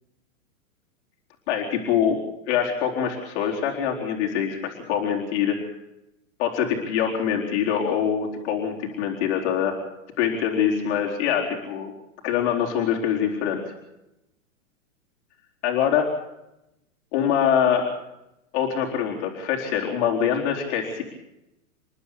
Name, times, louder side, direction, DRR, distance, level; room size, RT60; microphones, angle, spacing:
voice 1, 1.5-2.2 2.5-5.6 6.4-9.8 10.2-11.9 12.2-13.6 15.6-16.1 17.1-17.9 18.5-21.0, left 8 dB, 50° left, -1 dB, 4.1 m, -24 dB
28.5 x 11.5 x 8.3 m, 0.90 s
hypercardioid pair, 135°, 43 cm